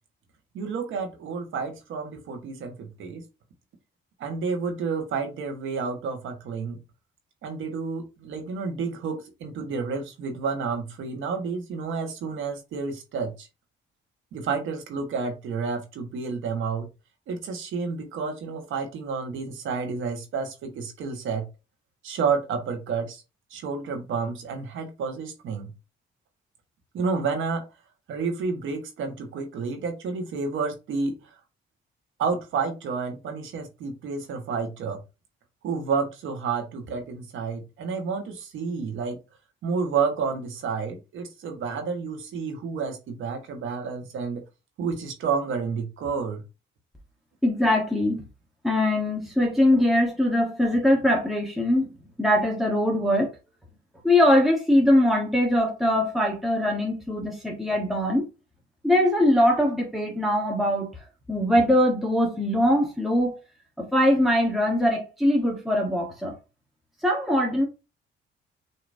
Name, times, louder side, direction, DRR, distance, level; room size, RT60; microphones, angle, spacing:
voice 1, 0.5-3.2 4.2-6.8 7.4-13.5 14.3-16.9 17.3-21.5 22.0-23.2 23.5-25.7 26.9-27.7 28.1-31.2 32.2-35.0 35.6-39.2 39.6-44.4 44.8-46.4, right 5 dB, 80° right, 1.4 m, -30 dB
voice 2, 47.4-48.2 48.6-51.9 52.2-53.3 54.0-58.2 58.8-60.9 61.3-63.4 63.8-66.3 67.0-67.6, left 1 dB, ahead, 1.2 m, -22 dB
6.6 x 3.0 x 2.6 m
cardioid pair, 90°, 20 cm